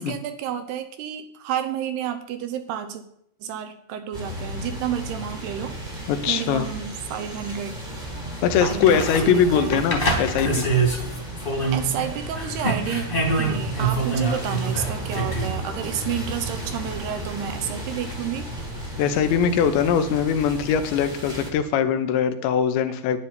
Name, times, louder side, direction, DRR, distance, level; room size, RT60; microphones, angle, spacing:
voice 1, 0.0-3.0 3.4-5.9 6.3-7.8 8.6-9.9 11.7-13.1 13.4-18.5, right 9 dB, 75° right, 8 dB, 2.7 m, -30 dB
sound 1, 4.1-21.5, right 1 dB, 20° right, 1.4 m, -34 dB
voice 2, 6.1-6.7 8.4-10.7 19.0-23.2, left 7 dB, 85° left, 9 dB, 3.2 m, -21 dB
sound 2, 8.5-12.1 12.3-15.5 18.1-18.2, right 2 dB, 20° left, 1.5 m, -26 dB
11.5 x 10.0 x 4.3 m, 0.72 s
omnidirectional pair, 5.0 m